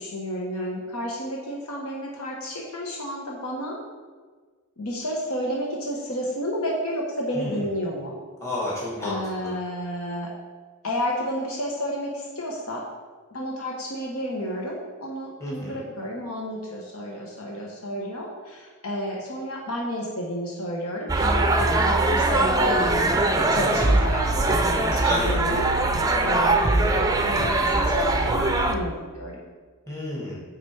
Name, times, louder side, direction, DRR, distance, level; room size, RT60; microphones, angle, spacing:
voice 1, 0.0-3.8 4.8-8.2 9.0-10.3 10.8-12.9 13.3-23.2 23.5-25.7 26.2-29.4, equal, 85° left, -2 dB, 1.1 m, -31 dB
voice 2, 8.4-9.5 15.4-15.8 25.0-25.4 29.9-30.4, left 1 dB, 15° left, -7 dB, 2.1 m, -30 dB
sound 1, 21.1-28.8, right 2 dB, 15° right, 0.5 m, -21 dB
8.8 x 4.2 x 4.8 m, 1.5 s
head